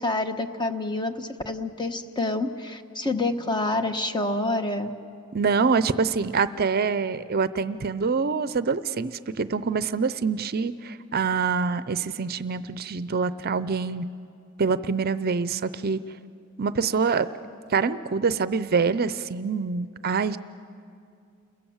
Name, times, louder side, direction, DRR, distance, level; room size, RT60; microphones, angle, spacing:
voice 1, 0.0-4.9, left 2 dB, 20° left, 7 dB, 1.1 m, -27 dB
voice 2, 5.3-14.1 14.6-16.0 16.6-17.3 17.7-20.4, right 5 dB, 45° right, 14 dB, 0.6 m, -25 dB
29.0 x 22.0 x 7.2 m, 2.4 s
head